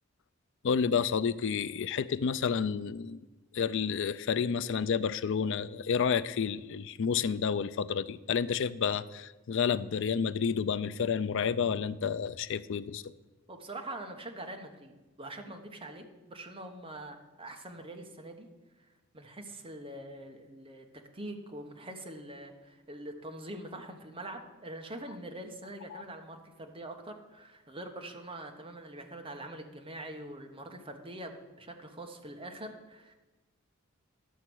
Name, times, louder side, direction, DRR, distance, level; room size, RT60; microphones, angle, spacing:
voice 1, 0.6-3.2 3.5-13.1 25.9-26.0, left 6 dB, 60° left, 15 dB, 0.4 m, -30 dB
voice 2, 13.5-14.9 15.2-18.5 19.1-20.9 21.1-33.1, right 1 dB, 25° right, 4 dB, 1.0 m, -44 dB
11.0 x 6.6 x 6.1 m, 1.1 s
head